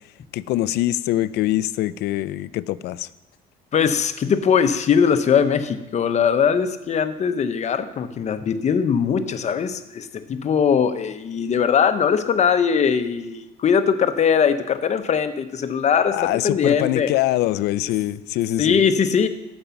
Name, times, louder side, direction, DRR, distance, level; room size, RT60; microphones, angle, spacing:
voice 1, 0.3-3.1 16.1-18.8, left 15 dB, 80° left, 17 dB, 0.4 m, -23 dB
voice 2, 3.7-17.1 18.6-19.3, left 7 dB, 45° left, 10 dB, 0.8 m, -20 dB
14.0 x 5.3 x 5.9 m, 0.95 s
cardioid pair, 110°, 17 cm